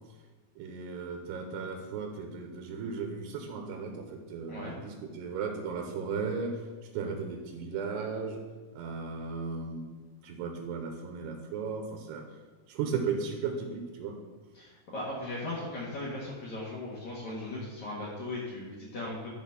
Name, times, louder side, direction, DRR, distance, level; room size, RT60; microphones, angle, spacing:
voice 1, 0.6-6.7 6.9-8.4 8.7-12.2 12.7-14.2, right 5 dB, 90° right, 2 dB, 3.0 m, -36 dB
voice 2, 14.5-19.3, left 2 dB, 55° left, -6 dB, 2.5 m, -38 dB
12.0 x 4.1 x 5.8 m, 1.3 s
omnidirectional pair, 4.6 m